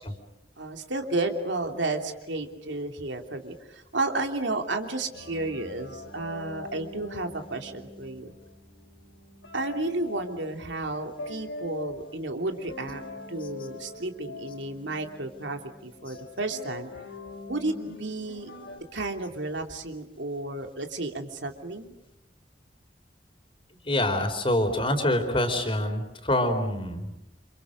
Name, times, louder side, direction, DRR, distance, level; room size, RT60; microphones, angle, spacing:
voice 1, 0.6-8.3 9.5-13.0 13.3-16.9 17.5-18.5 18.9-21.9, right 2 dB, 85° right, 4 dB, 3.0 m, -32 dB
sound 1, 5.1-18.8, left 2 dB, 85° left, 6.4 m, -43 dB
voice 2, 23.8-27.1, left 1 dB, 30° left, 6 dB, 4.0 m, -25 dB
29.5 x 27.5 x 6.5 m, 0.84 s
head